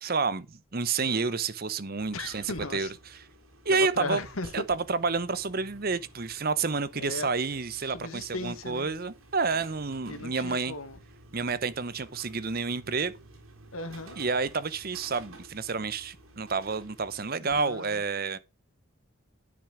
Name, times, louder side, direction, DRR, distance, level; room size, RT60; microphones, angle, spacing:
voice 1, 0.0-2.9 3.6-4.2 4.5-10.7 11.3-13.1 14.2-18.4, right 4 dB, 45° right, 0.8 m, -29 dB
sound 1, 2.0-17.3, right 2 dB, 85° right, 3.5 m, -55 dB
voice 2, 2.1-2.9 3.7-4.6 6.9-7.3 7.8-8.9 10.1-11.0 13.7-14.2 17.4-18.0, left 3 dB, 90° left, 1.7 m, -37 dB
sound 2, 3.9-16.3, right 1 dB, 70° right, 3.0 m, -57 dB
10.5 x 6.2 x 5.0 m
head